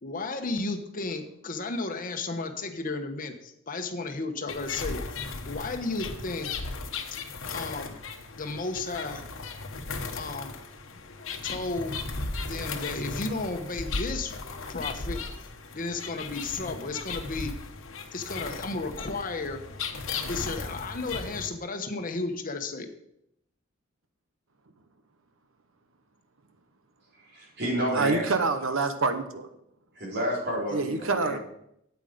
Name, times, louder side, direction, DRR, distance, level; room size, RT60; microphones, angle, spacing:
voice 1, 0.0-5.0 5.5-6.5 7.5-8.0 8.4-9.2 10.1-10.6 10.9-11.0 11.4-12.0 12.4-14.4 14.7-15.2 15.7-17.5 18.1-19.6 20.3-22.9, left 3 dB, 45° left, 6 dB, 1.1 m, -33 dB
sound 1, 4.5-21.5, left 4 dB, 75° left, 1.1 m, -36 dB
voice 2, 27.3-28.2 30.0-31.4, equal, 55° right, -4 dB, 4.2 m, -30 dB
voice 3, 27.9-29.5 30.7-31.4, right 3 dB, 85° right, 9 dB, 1.1 m, -26 dB
9.1 x 8.1 x 5.1 m, 0.77 s
head